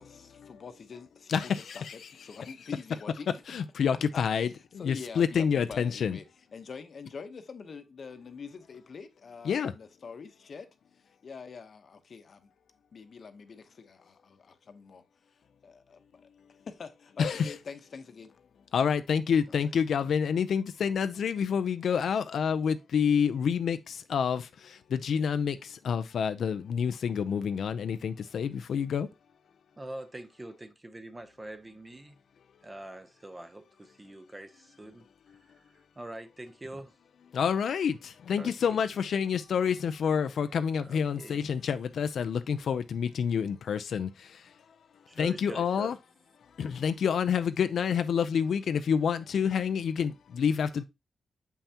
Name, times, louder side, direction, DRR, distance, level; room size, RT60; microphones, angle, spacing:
voice 1, 0.0-3.4 4.1-4.2 4.8-6.2 6.5-10.7 10.9-12.5 12.9-15.0 15.6-16.2 16.7-18.3, left 5 dB, 50° left, 0.9 m, -45 dB
voice 2, 1.3-2.0 3.5-6.2 9.4-9.7 17.2-17.6 18.7-29.1 37.3-44.5 45.2-46.0 46.6-50.8, left 7 dB, 75° left, 0.5 m, -28 dB
voice 3, 29.8-32.2 32.6-36.9 38.4-38.8 40.8-41.4 45.1-45.9, right 1 dB, 20° right, 0.7 m, -44 dB
7.1 x 5.6 x 2.8 m
wide cardioid pair, 135°, 0 cm